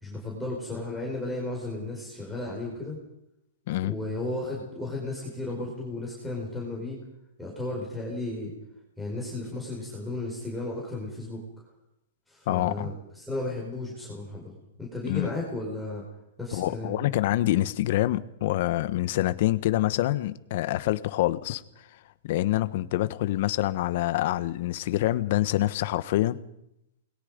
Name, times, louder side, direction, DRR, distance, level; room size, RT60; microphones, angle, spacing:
voice 1, 0.0-3.0 3.8-7.0 7.4-8.5 9.0-11.4 12.3-16.0 16.4-17.0, left 2 dB, ahead, -5 dB, 5.3 m, -34 dB
voice 2, 12.5-12.9 15.0-15.3 16.5-21.6 22.2-26.4, left 15 dB, 45° left, 13 dB, 1.2 m, -26 dB
28.5 x 21.5 x 5.3 m, 0.82 s
hypercardioid pair, 160°, 0 cm